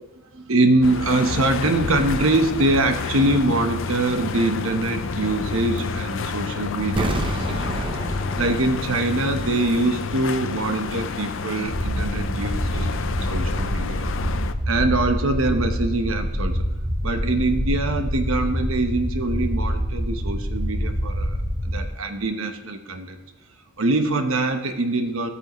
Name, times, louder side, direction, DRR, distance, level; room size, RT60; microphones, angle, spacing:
voice 1, 0.3-14.1 14.7-16.6 17.0-21.4 21.6-23.2 23.8-25.3, right 2 dB, 70° right, 6 dB, 1.1 m, -24 dB
sound 1, 0.8-14.5, left 4 dB, 60° left, 0.5 m, -29 dB
sound 2, 6.9-9.8 10.1-10.2, right 1 dB, 25° right, 0.7 m, -29 dB
sound 3, 11.6-21.8, equal, 50° right, 3.9 m, -26 dB
15.5 x 8.4 x 3.1 m, 1.1 s
head